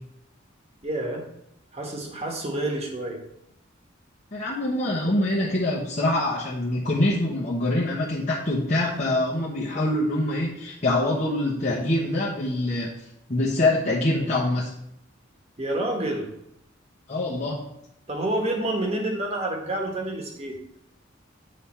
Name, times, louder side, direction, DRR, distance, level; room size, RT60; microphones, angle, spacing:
voice 1, 0.8-1.2 1.7-3.2 15.6-16.3 18.1-20.6, right 1 dB, 30° right, 1 dB, 1.3 m, -28 dB
voice 2, 4.3-14.7 17.1-17.6, left 1 dB, 35° left, -6 dB, 0.9 m, -25 dB
8.5 x 3.5 x 4.4 m, 0.78 s
head